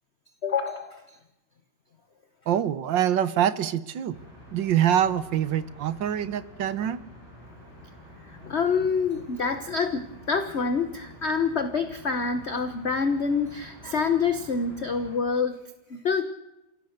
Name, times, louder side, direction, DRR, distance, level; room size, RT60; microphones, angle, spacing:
voice 1, 0.4-1.2 8.4-15.6 15.9-16.2, left 5 dB, 40° left, 9 dB, 1.1 m, -26 dB
voice 2, 2.5-4.2 4.5-7.0, right 10 dB, 70° right, 15 dB, 1.6 m, -25 dB
sound 1, 4.1-15.2, left 1 dB, 85° right, 8.3 m, -48 dB
29.5 x 16.5 x 6.6 m, 0.93 s
omnidirectional pair, 2.2 m